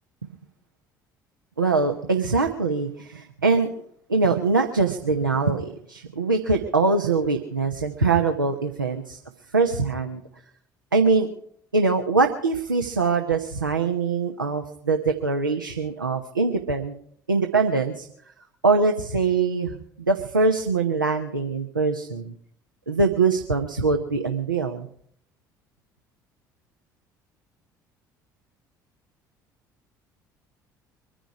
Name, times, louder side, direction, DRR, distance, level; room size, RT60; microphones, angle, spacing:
voice 1, 1.6-3.7 4.1-9.2 9.5-10.2 10.9-11.3 11.7-16.9 17.3-18.1 18.6-22.3 22.9-24.9, right 4 dB, 85° right, 4 dB, 0.9 m, -23 dB
24.0 x 10.0 x 4.8 m, 0.65 s
figure-of-eight pair, 55°, 10 cm